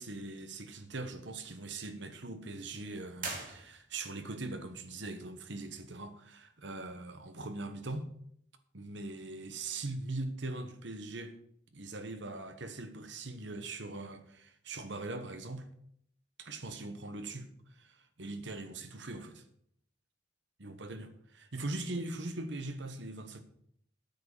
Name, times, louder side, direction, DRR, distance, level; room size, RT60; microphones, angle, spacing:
voice 1, 0.0-8.1 8.7-11.4 11.7-15.7 16.4-19.4 20.6-23.4, right 2 dB, 65° right, 1.2 m, -41 dB
sound 1, 3.2-4.2, right 4 dB, 45° right, 2.4 m, -41 dB
9.2 x 7.6 x 6.7 m
head